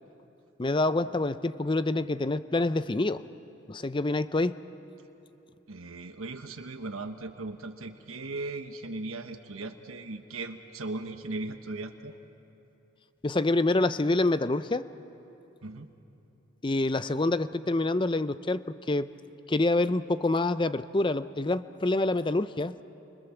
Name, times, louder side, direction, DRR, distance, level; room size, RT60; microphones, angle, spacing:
voice 1, 0.6-3.2 3.7-4.6 13.2-14.9 16.6-18.6 18.9-19.1 19.5-22.7, left 2 dB, 25° left, 13 dB, 0.5 m, -26 dB
voice 2, 5.7-12.1 15.6-15.9, right 2 dB, 90° right, 6 dB, 1.2 m, -38 dB
29.5 x 24.5 x 7.1 m, 3.0 s
head